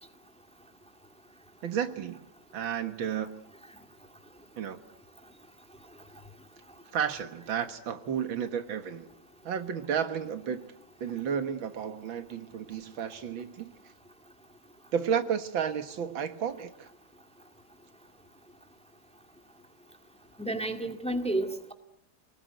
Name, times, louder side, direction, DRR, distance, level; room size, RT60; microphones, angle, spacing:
voice 1, 1.6-2.2 2.5-3.3 4.6-4.8 6.9-9.1 9.4-10.6 11.0-13.7 14.9-16.9, right 8 dB, 85° right, 9 dB, 2.3 m, -32 dB
voice 2, 20.4-21.7, right 1 dB, 5° left, 6 dB, 1.9 m, -31 dB
28.5 x 19.5 x 9.3 m, 0.81 s
omnidirectional pair, 2.1 m